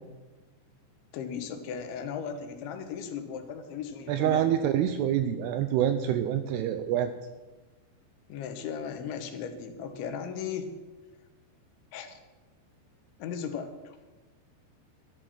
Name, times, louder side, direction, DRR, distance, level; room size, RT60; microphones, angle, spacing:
voice 1, 1.1-4.7 8.3-10.7 11.9-12.2 13.2-14.0, left 7 dB, 80° left, 7 dB, 3.5 m, -37 dB
voice 2, 4.1-7.1, right 10 dB, 85° right, 9 dB, 2.4 m, -26 dB
12.5 x 12.0 x 6.1 m, 1.2 s
omnidirectional pair, 5.2 m